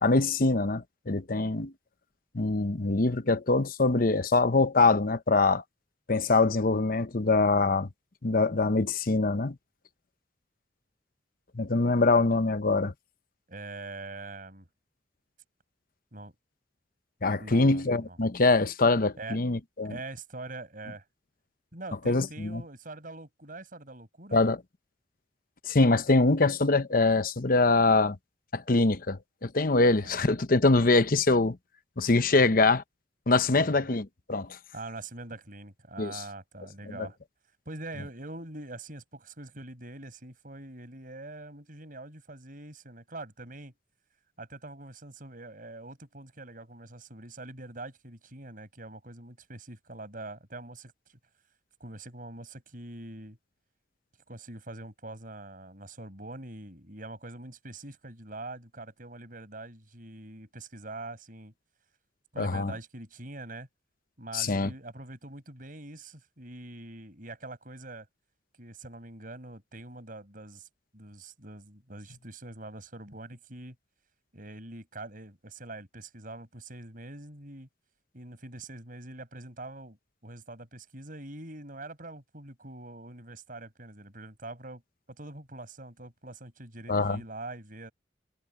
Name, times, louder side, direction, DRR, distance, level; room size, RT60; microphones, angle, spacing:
voice 1, 0.0-1.7 2.3-5.6 6.1-7.9 8.2-9.6 11.5-12.9 17.2-20.0 22.1-22.6 24.3-24.6 25.7-28.2 28.5-31.6 32.0-32.8 33.3-34.6 36.0-36.2 37.0-37.1 62.4-62.7 64.3-64.7 86.9-87.2, left 3 dB, 50° left, 0.9 m, -24 dB
voice 2, 13.5-14.7 16.1-16.4 17.4-18.2 19.2-19.4 19.8-21.0 21.7-24.4 30.0-30.2 32.3-32.7 33.5-33.9 34.7-37.2 37.7-43.7 44.4-51.2 51.8-53.4 54.3-61.5 62.3-63.7 64.2-68.1 68.6-70.7 70.9-73.8 74.3-77.7 78.1-80.0 80.2-84.8 85.1-87.9, right 2 dB, 50° right, 5.9 m, -44 dB
head